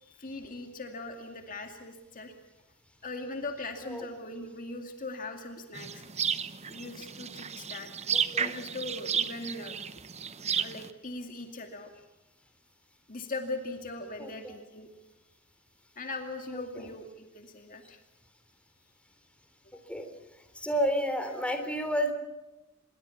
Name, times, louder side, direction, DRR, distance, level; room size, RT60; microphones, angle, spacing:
voice 1, 0.0-2.3 3.0-6.1 6.7-9.8 10.6-11.9 13.1-14.9 16.0-18.0, left 2 dB, 40° left, 4 dB, 2.3 m, -40 dB
sound 1, 5.7-10.9, right 7 dB, 30° right, 0.9 m, -33 dB
voice 2, 8.1-8.5 14.2-14.5 19.9-20.1 20.6-22.1, equal, 5° left, 6 dB, 3.5 m, -30 dB
26.5 x 22.0 x 7.2 m, 1.0 s
head